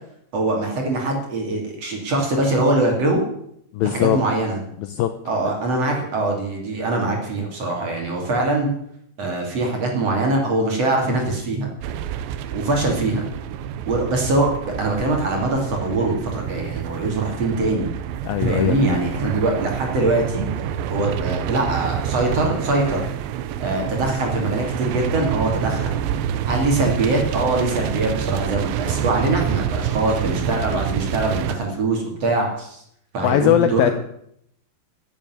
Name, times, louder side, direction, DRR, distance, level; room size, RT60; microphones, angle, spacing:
voice 1, 0.3-3.2 3.8-4.6 5.3-8.7 9.2-11.7 12.5-13.2 13.9-14.5 14.8-17.9 18.4-20.5 20.9-23.1 23.6-26.0 26.5-32.8 33.1-33.9, right 2 dB, 40° right, 1 dB, 3.5 m, -22 dB
voice 2, 3.7-4.2 4.8-5.1 18.2-19.0 33.2-33.9, left 11 dB, 90° left, 9 dB, 2.0 m, -20 dB
sound 1, 11.8-31.6, right 9 dB, 80° right, 3.0 m, -27 dB
12.5 x 8.8 x 9.4 m, 0.72 s
omnidirectional pair, 5.1 m